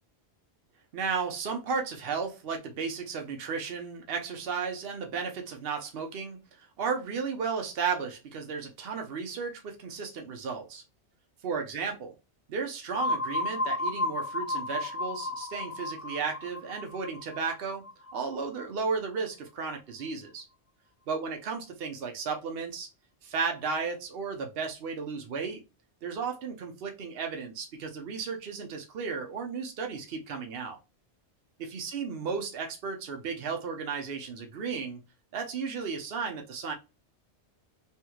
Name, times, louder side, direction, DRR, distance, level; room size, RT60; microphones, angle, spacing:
voice 1, 0.9-6.4 6.8-10.8 11.4-12.1 12.5-17.9 18.1-20.4 21.1-22.9 23.2-25.6 26.0-30.8 31.6-35.0 35.3-36.7, right 5 dB, 60° right, 1.0 m, -34 dB
sound 1, 12.9-18.6, left 2 dB, 40° left, 0.6 m, -33 dB
3.2 x 3.0 x 2.3 m
omnidirectional pair, 1.2 m